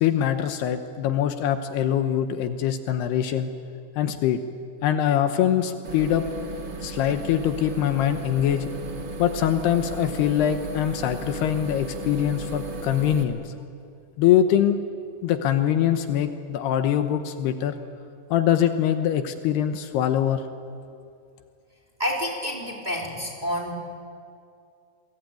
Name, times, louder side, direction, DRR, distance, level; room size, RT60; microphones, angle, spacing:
voice 1, 0.0-3.5 4.0-4.4 4.8-6.3 6.8-8.7 9.2-13.4 14.2-14.8 15.2-17.8 18.3-20.5, left 10 dB, 75° left, 8 dB, 3.0 m, -23 dB
sound 1, 5.8-13.2, right 2 dB, 40° right, 1.9 m, -35 dB
voice 2, 22.0-23.7, equal, 10° right, -1 dB, 3.5 m, -28 dB
29.0 x 22.0 x 9.2 m, 2.4 s
omnidirectional pair, 4.9 m